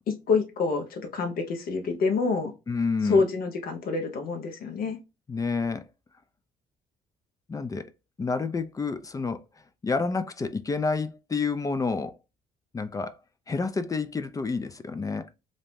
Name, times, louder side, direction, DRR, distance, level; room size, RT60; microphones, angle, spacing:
voice 1, 0.3-2.5 3.0-5.0, left 4 dB, 60° left, 0.7 m, -26 dB
voice 2, 2.7-3.3 5.3-5.9 7.5-7.9 8.2-9.4 9.8-12.2 12.7-13.2 13.5-15.3, left 4 dB, 20° left, 0.3 m, -29 dB
2.6 x 2.1 x 3.1 m
cardioid pair, 90°, 17 cm